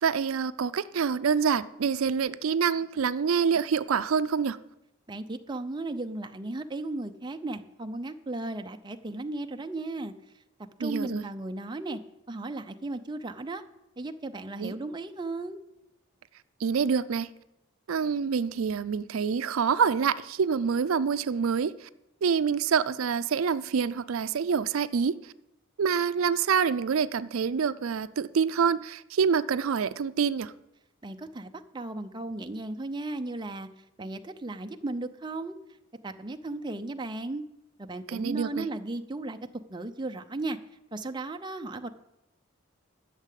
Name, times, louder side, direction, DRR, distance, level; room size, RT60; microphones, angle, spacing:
voice 1, 0.0-4.6 10.8-11.2 14.6-14.7 16.6-17.3 17.9-21.9 22.2-25.2 25.8-30.5 38.1-38.7, right 6 dB, 85° right, 0.4 m, -26 dB
voice 2, 5.1-10.1 10.8-12.0 12.3-13.6 14.0-15.6 31.0-33.7 34.0-35.6 36.0-37.4 37.8-39.4 39.7-40.6 40.9-41.9, right 2 dB, 20° right, 0.5 m, -35 dB
12.0 x 6.6 x 8.3 m
head